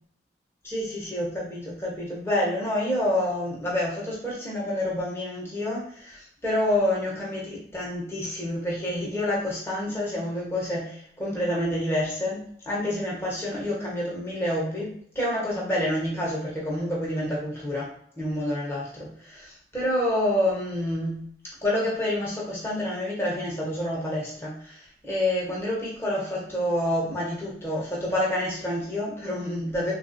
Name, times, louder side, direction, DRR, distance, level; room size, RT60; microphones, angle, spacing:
voice 1, 0.6-17.9 18.2-21.2 21.6-29.9, left 1 dB, 15° left, -5 dB, 0.7 m, -28 dB
3.4 x 2.3 x 2.5 m, 0.64 s
head